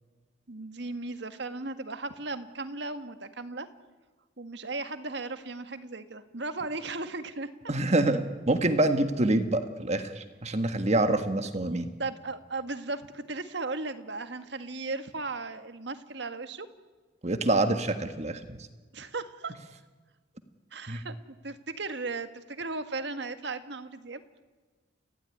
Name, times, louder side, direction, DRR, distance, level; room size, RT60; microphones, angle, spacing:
voice 1, 0.5-3.7 4.4-7.5 12.0-16.7 18.9-19.5 20.7-21.2 21.4-24.2, right 3 dB, 65° right, 9 dB, 1.7 m, -36 dB
voice 2, 7.7-11.9 17.2-18.4 20.9-21.0, right 2 dB, 35° right, 8 dB, 1.6 m, -26 dB
30.0 x 16.0 x 10.0 m, 1.4 s
head